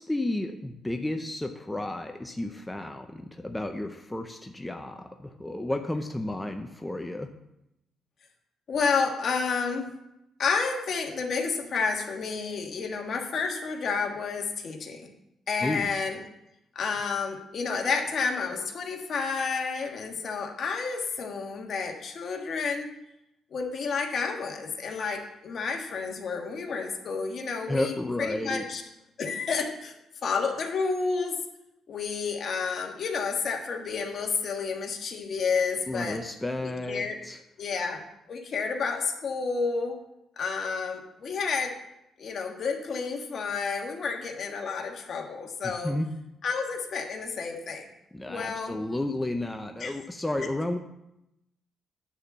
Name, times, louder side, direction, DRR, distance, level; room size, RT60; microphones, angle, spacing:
voice 1, 0.0-7.3 15.6-15.9 27.7-28.6 35.9-37.4 45.6-46.1 48.1-50.8, left 1 dB, 10° left, 5 dB, 0.7 m, -32 dB
voice 2, 8.7-9.9 10.4-15.1 15.5-16.2 16.7-22.9 23.5-28.8 29.2-30.0 30.2-31.4 31.9-36.2 36.6-37.2 37.6-38.0 38.3-40.0 40.4-41.7 42.2-46.0 46.4-47.9 48.2-48.8 49.8-50.0, left 5 dB, 55° left, 3 dB, 1.5 m, -30 dB
9.9 x 4.2 x 7.2 m, 0.86 s
cardioid pair, 90°, 0 cm